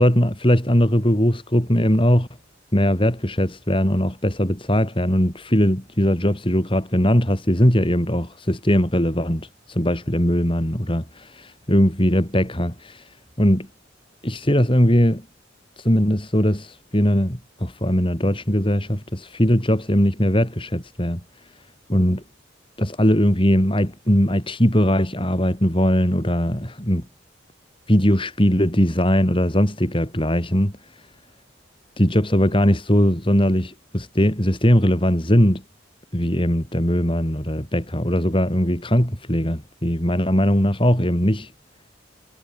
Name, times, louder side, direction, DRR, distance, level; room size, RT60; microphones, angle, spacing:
voice 1, 0.0-2.3 2.7-13.1 13.4-13.7 14.2-15.3 15.8-21.2 21.9-22.2 22.8-27.1 27.9-31.0 32.0-35.6 36.1-41.5, equal, 25° left, 5.4 m, -20 dB
head